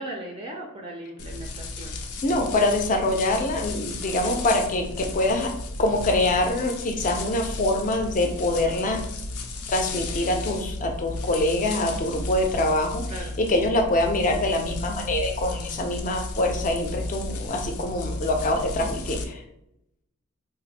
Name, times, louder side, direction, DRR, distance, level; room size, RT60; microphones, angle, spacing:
voice 1, 0.0-2.0 4.2-4.3 13.1-13.3, right 1 dB, 25° right, 0 dB, 0.4 m, -37 dB
sound 1, 1.2-19.2, left 2 dB, 90° left, 0.5 m, -34 dB
voice 2, 2.2-5.5 5.8-9.0 9.7-13.0 13.4-19.4, left 1 dB, 35° left, 4 dB, 0.5 m, -24 dB
2.5 x 2.5 x 4.0 m, 0.81 s
head